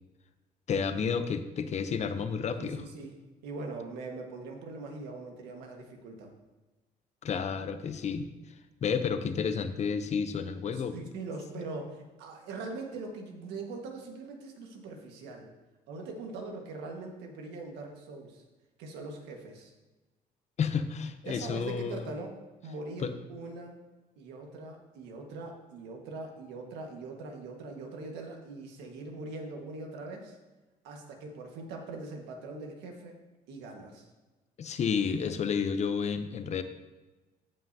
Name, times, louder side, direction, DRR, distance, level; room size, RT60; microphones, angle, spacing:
voice 1, 0.7-2.8 7.2-8.2 8.8-11.0 20.6-22.1 23.0-23.1 34.6-36.6, left 6 dB, 40° left, 10 dB, 0.7 m, -31 dB
voice 2, 2.6-3.1 3.4-6.3 10.7-15.5 15.9-18.4 18.8-19.7 21.2-23.8 24.2-30.4 30.8-33.2 33.5-34.1, right 3 dB, 90° right, 2 dB, 1.6 m, -42 dB
15.0 x 5.6 x 2.8 m, 1.1 s
cardioid pair, 110°, 17 cm